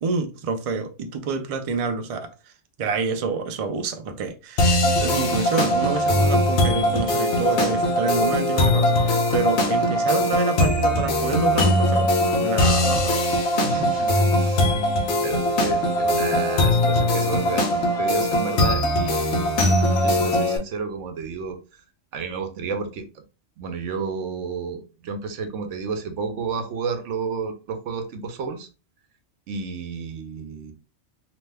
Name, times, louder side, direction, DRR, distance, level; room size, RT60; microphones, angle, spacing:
voice 1, 0.0-2.3 2.8-4.7 5.0-12.1 12.4-13.3 15.2-15.3, right 4 dB, 65° right, 0.3 m, -27 dB
sound 1, 4.6-20.6, left 1 dB, 75° left, 0.9 m, -21 dB
voice 2, 13.6-14.8 15.2-19.7 20.0-21.8 22.1-23.2 23.6-28.7 29.5-30.7, right 5 dB, 85° right, 0.9 m, -31 dB
2.9 x 2.1 x 3.3 m
omnidirectional pair, 1.2 m